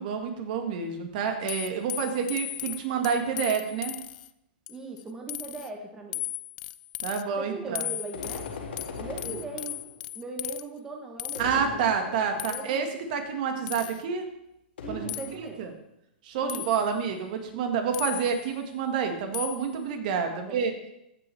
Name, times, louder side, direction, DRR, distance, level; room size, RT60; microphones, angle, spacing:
voice 1, 0.0-3.9 7.0-7.9 11.4-14.3 14.9-15.1 15.4-15.7 16.2-20.7, right 6 dB, 50° right, 5 dB, 1.6 m, -28 dB
sound 1, 1.5-4.3 4.7-5.0 5.3-5.7 6.1-7.2 7.8-10.6 11.2-11.4 12.4-12.8 13.7-14.0 15.1-15.3 16.5-16.9 17.9-18.5 19.3-19.7, left 16 dB, 50° left, 0.4 m, -36 dB
voice 2, 4.7-6.2 7.4-8.5 9.0-9.8 10.1-12.8 14.8-15.8 16.4-16.6 20.3-20.6, right 3 dB, 10° right, 1 dB, 0.9 m, -40 dB
sound 2, 8.1-10.1 11.3-12.6 14.8-15.8, left 4 dB, 85° left, 1.9 m, -40 dB
15.0 x 6.1 x 3.3 m, 0.83 s
hypercardioid pair, 140°, 6 cm